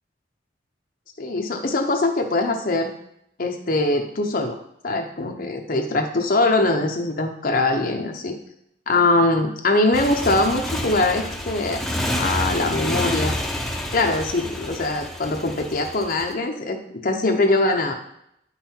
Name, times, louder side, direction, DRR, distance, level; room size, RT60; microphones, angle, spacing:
voice 1, 1.2-2.9 3.4-4.6 4.8-8.4 8.9-11.8 12.2-13.4 13.9-17.9, left 2 dB, 50° left, 3 dB, 0.9 m, -22 dB
Motorcycle, 9.9-16.3, left 1 dB, ahead, 0.8 m, -28 dB
9.7 x 5.7 x 4.5 m, 0.76 s
head